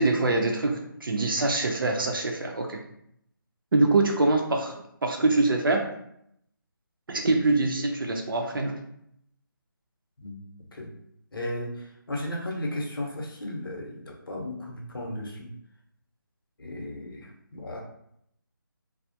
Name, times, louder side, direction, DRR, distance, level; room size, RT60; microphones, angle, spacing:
voice 1, 0.0-2.8 3.7-4.7 5.0-5.9 7.1-8.8, right 2 dB, 65° right, 2 dB, 0.5 m, -24 dB
voice 2, 11.3-15.5 16.6-17.8, left 1 dB, 70° left, 0 dB, 0.8 m, -35 dB
2.3 x 2.0 x 2.7 m, 0.73 s
figure-of-eight pair, 165°, 12 cm